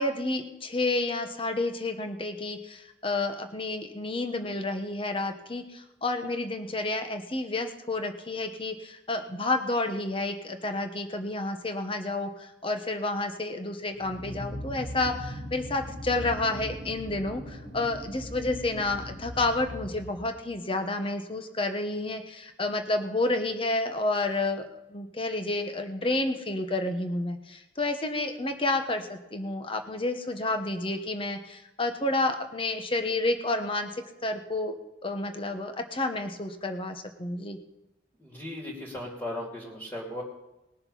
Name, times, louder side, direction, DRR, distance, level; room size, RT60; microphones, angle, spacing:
voice 1, 0.0-24.6 24.9-34.8 35.0-37.6, left 2 dB, 25° left, 6 dB, 1.1 m, -30 dB
sound 1, 14.0-20.5, equal, 85° left, 4.2 m, -39 dB
voice 2, 38.2-40.2, left 1 dB, 10° left, -3 dB, 2.7 m, -37 dB
20.0 x 6.8 x 5.6 m, 0.94 s
head